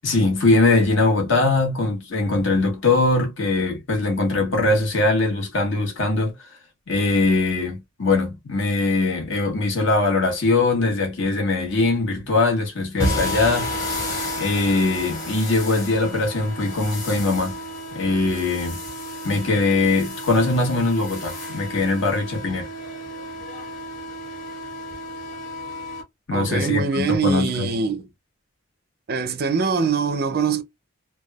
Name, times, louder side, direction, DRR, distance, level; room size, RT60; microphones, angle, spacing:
voice 1, 0.0-6.3 6.9-13.7 14.4-17.6 17.9-18.8 19.2-22.7 26.3-27.7, left 3 dB, 70° left, 1.3 m, -21 dB
sound 1, 13.0-26.0, left 1 dB, 40° left, 1.3 m, -33 dB
sound 2, 13.0-19.4, equal, 15° left, 0.8 m, -33 dB
voice 2, 26.3-28.1 29.1-30.6, right 5 dB, 50° right, 0.5 m, -23 dB
3.4 x 2.2 x 2.3 m
head